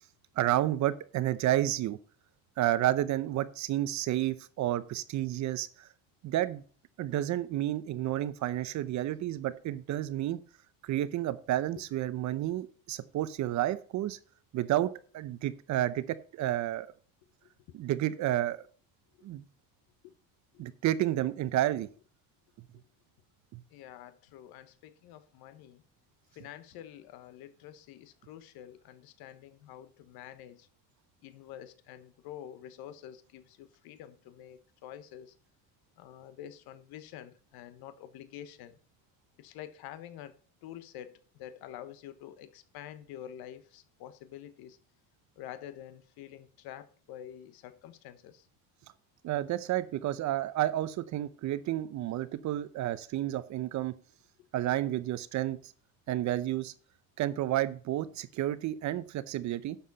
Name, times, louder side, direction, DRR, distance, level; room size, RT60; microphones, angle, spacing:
voice 1, 0.4-2.0 2.6-5.9 6.2-6.6 7.0-10.4 10.8-14.2 14.5-16.9 17.7-18.6 19.2-19.4 20.6-21.9 23.5-23.6 49.2-53.9 54.5-55.6 56.1-56.7 57.2-59.8, right 13 dB, 45° right, 0.8 m, -31 dB
voice 2, 23.7-25.8 26.3-30.7 31.2-35.3 36.0-38.8 39.4-40.3 40.6-44.8 45.4-48.5, left 11 dB, 60° left, 1.3 m, -47 dB
11.5 x 7.3 x 4.1 m
cardioid pair, 160°, 41 cm